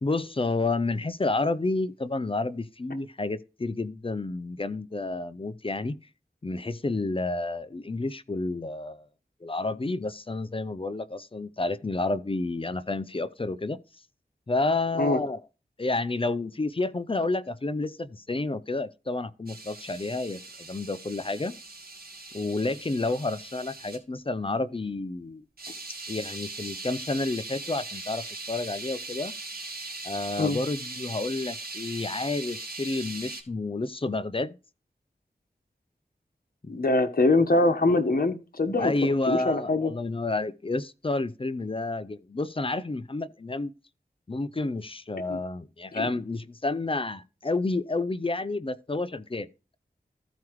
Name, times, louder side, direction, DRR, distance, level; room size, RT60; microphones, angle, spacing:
voice 1, 0.0-6.0 6.4-9.0 9.4-13.8 14.5-15.4 15.8-21.5 22.3-25.4 26.1-29.3 30.0-34.6 36.6-36.7 38.8-43.7 44.3-49.5, left 2 dB, 35° left, 0.6 m, -30 dB
sound 1, 19.5-24.0 25.6-33.4, right 3 dB, 65° right, 1.9 m, -40 dB
voice 2, 36.7-39.9 45.3-45.4 45.9-46.1, left 2 dB, 60° left, 1.2 m, -24 dB
14.5 x 4.8 x 3.1 m
wide cardioid pair, 65°, 17 cm